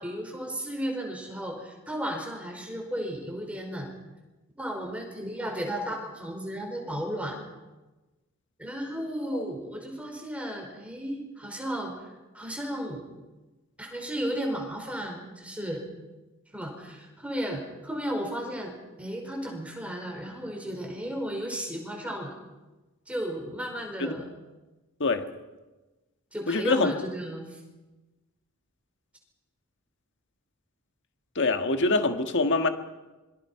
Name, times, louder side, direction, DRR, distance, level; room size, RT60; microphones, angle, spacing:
voice 1, 0.0-3.9 4.6-7.4 8.6-12.1 12.3-13.0 13.8-15.8 16.5-22.3 23.1-24.3 26.3-27.6, equal, 5° right, 1 dB, 5.2 m, -34 dB
voice 2, 26.5-26.9 31.3-32.7, left 3 dB, 55° left, 7 dB, 1.6 m, -24 dB
26.0 x 23.5 x 5.7 m, 1.1 s
head